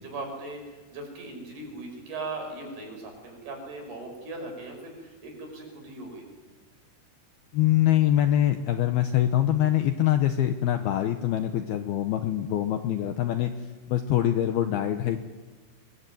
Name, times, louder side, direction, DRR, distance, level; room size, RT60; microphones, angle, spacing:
voice 1, 0.0-6.2, right 2 dB, 55° right, 3 dB, 7.8 m, -39 dB
voice 2, 7.5-13.5 13.9-15.2, left 12 dB, 70° left, 7 dB, 2.5 m, -24 dB
26.5 x 22.5 x 9.4 m, 1.3 s
omnidirectional pair, 5.6 m